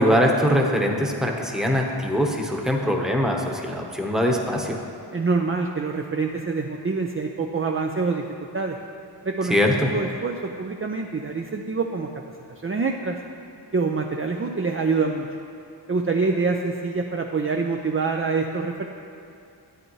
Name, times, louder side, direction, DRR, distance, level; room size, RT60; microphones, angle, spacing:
voice 1, 0.0-4.8 9.5-9.9, equal, ahead, 0 dB, 1.0 m, -22 dB
voice 2, 5.1-8.2 8.5-8.8 9.2-12.1 12.6-13.2 13.7-15.3 15.9-18.9, right 4 dB, 30° right, 2 dB, 0.5 m, -25 dB
11.5 x 9.1 x 3.1 m, 2.5 s
wide cardioid pair, 65°, 45 cm